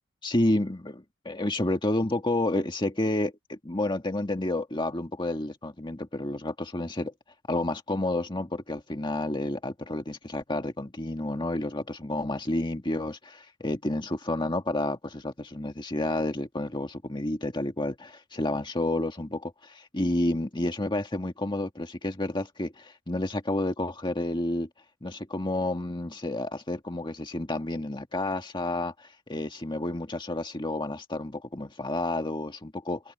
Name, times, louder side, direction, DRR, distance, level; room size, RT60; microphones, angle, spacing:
voice 1, 0.2-7.1 7.5-24.7 25.0-33.0, left 1 dB, 20° left, 1.9 m, -30 dB
head